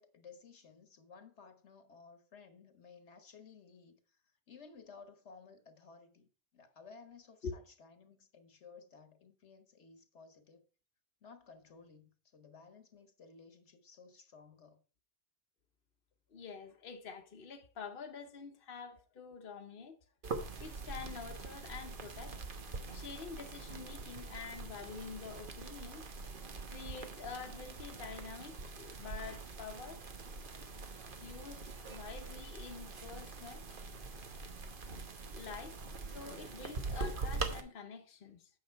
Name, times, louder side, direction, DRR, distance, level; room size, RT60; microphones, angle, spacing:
voice 1, 0.0-4.2 4.5-10.6 11.2-14.8, left 5 dB, 80° left, 1.5 m, -57 dB
voice 2, 16.3-20.0 20.6-22.5 22.9-26.0 26.7-30.0 31.2-33.6 35.3-35.8 36.0-38.5, left 5 dB, 55° left, 1.1 m, -47 dB
sound 1, 20.2-37.6, right 3 dB, 50° right, 1.2 m, -43 dB
9.0 x 6.5 x 4.5 m
omnidirectional pair, 1.2 m